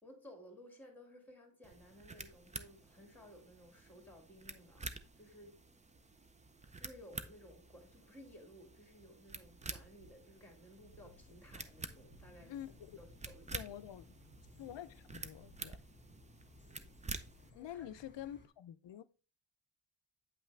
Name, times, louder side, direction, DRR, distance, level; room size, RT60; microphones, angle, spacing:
voice 1, 0.0-5.6 6.8-12.5 13.0-13.6 17.5-17.9, equal, 5° left, 2.0 m, -57 dB
sound 1, 1.6-17.5, right 3 dB, 15° right, 0.4 m, -50 dB
sound 2, 9.5-16.0, right 5 dB, 85° right, 0.9 m, -67 dB
sound 3, 11.0-18.5, left 3 dB, 20° left, 1.8 m, -62 dB
voice 2, 12.4-13.0 13.5-14.2 14.6-15.8 17.5-19.0, left 11 dB, 65° left, 0.6 m, -48 dB
8.6 x 5.7 x 3.2 m
wide cardioid pair, 170°, 48 cm